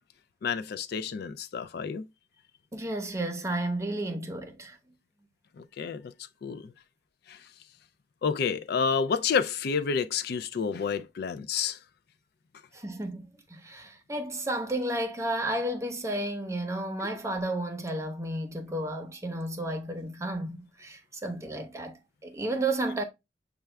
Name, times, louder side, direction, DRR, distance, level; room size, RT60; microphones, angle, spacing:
voice 1, 0.4-2.0 5.6-6.1 6.4-6.6 7.3-7.4 8.2-11.8, left 6 dB, 60° left, 0.4 m, -29 dB
voice 2, 2.7-4.8 12.7-23.0, right 1 dB, 15° right, 0.8 m, -32 dB
6.7 x 2.3 x 3.2 m
head